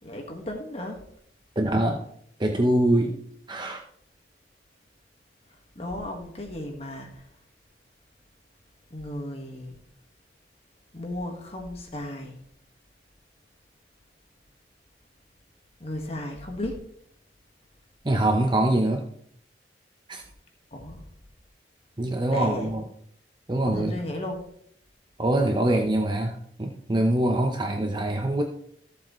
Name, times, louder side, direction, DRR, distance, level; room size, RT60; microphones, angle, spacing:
voice 1, 0.0-1.0 5.7-7.2 8.9-9.8 10.9-12.3 15.8-16.8 20.7-21.0 22.3-22.7 23.6-24.4, left 1 dB, 35° left, 2 dB, 1.5 m, -34 dB
voice 2, 1.6-2.0 2.4-3.2 3.5-3.8 18.0-19.1 20.1-20.2 22.0-22.9 23.5-24.0 25.2-28.4, right 1 dB, 25° right, 3 dB, 0.7 m, -24 dB
14.5 x 7.4 x 3.1 m, 0.66 s
head